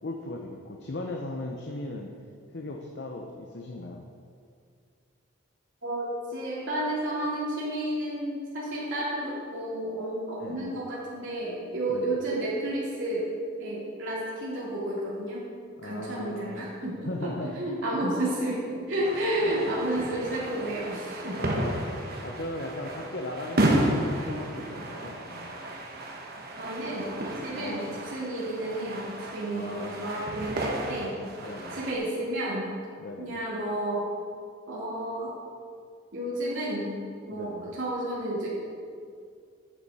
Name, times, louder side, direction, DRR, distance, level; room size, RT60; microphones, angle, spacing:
voice 1, 0.0-2.1 2.5-4.1 10.4-10.8 11.9-12.2 15.8-16.7 17.0-17.6 18.0-18.1 19.4-19.5 21.4-25.5 27.6-27.9 29.5-30.2 31.4-31.8 33.0-33.3 37.3-37.6, left 2 dB, 55° left, 1 dB, 0.7 m, -38 dB
voice 2, 5.8-13.3 13.6-15.5 15.8-21.4 26.6-31.2 31.7-32.7 33.2-34.1 34.7-35.3 36.1-37.0 37.3-38.5, right 1 dB, 70° right, -7 dB, 2.6 m, -31 dB
sound 1, 19.0-31.9, right 1 dB, 50° right, 1.1 m, -32 dB
10.5 x 7.0 x 4.9 m, 2.2 s
head